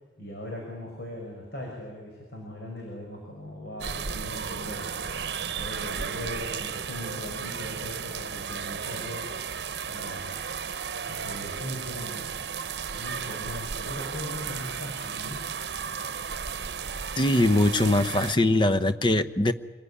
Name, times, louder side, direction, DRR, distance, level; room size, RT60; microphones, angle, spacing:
voice 1, 0.2-4.9 5.5-9.6 9.9-10.5 11.1-12.4 12.9-15.5, left 1 dB, 60° left, -1 dB, 6.0 m, -39 dB
sound 1, 3.8-18.3, right 6 dB, 65° right, 0.9 m, -34 dB
voice 2, 17.2-19.5, left 1 dB, 25° left, 11 dB, 0.9 m, -22 dB
27.5 x 20.0 x 10.0 m, 1.3 s
head